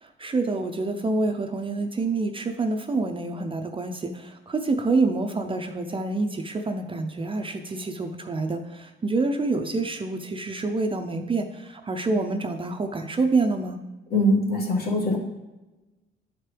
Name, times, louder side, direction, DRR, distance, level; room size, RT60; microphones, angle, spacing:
voice 1, 0.0-13.8, right 3 dB, 25° right, 5 dB, 0.5 m, -27 dB
voice 2, 14.1-15.2, left 1 dB, 50° left, -2 dB, 2.0 m, -22 dB
10.0 x 4.5 x 3.3 m, 1.1 s
cardioid pair, 90°, 20 cm